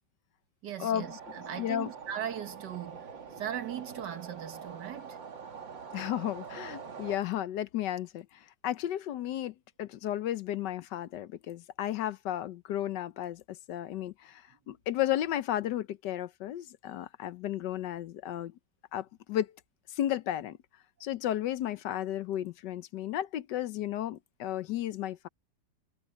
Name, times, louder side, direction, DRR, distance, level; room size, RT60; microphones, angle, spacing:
voice 1, 0.6-3.1 3.4-5.2, right 10 dB, 65° right, 1.9 m, -39 dB
sound 1, 0.9-7.2, right 6 dB, 85° right, 3.0 m, -45 dB
voice 2, 1.6-1.9 5.9-18.5 18.9-19.5 19.9-20.6 21.0-25.3, left 12 dB, 75° left, 1.3 m, -33 dB
omnidirectional pair, 2.0 m